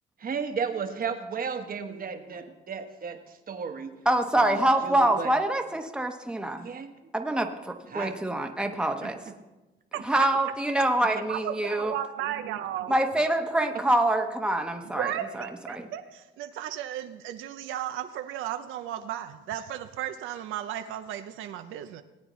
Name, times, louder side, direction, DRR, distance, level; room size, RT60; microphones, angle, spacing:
voice 1, 0.2-4.0 4.3-5.3 6.6-6.9 7.9-8.1 9.0-9.3 11.0-11.2, right 6 dB, 45° right, 7 dB, 1.2 m, -34 dB
voice 2, 4.0-6.7 7.1-9.1 10.0-11.9 12.9-15.1 15.4-15.9, right 1 dB, 5° right, 4 dB, 1.0 m, -25 dB
voice 3, 9.9-10.3 11.3-12.9 14.8-22.0, right 11 dB, 85° right, 8 dB, 0.6 m, -35 dB
19.0 x 8.7 x 3.1 m, 1.1 s
cardioid pair, 90°, 20 cm